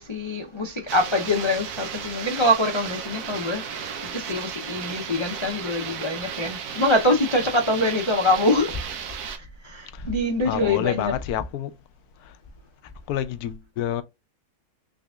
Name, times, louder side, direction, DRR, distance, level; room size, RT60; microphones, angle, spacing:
voice 1, 0.0-8.8 9.6-11.1, left 1 dB, 40° left, 0.4 m, -24 dB
sound 1, 0.9-9.4, right 7 dB, 85° right, 1.3 m, -34 dB
voice 2, 10.4-11.7 13.1-14.0, left 11 dB, 85° left, 1.1 m, -28 dB
3.8 x 3.4 x 2.3 m
omnidirectional pair, 1.6 m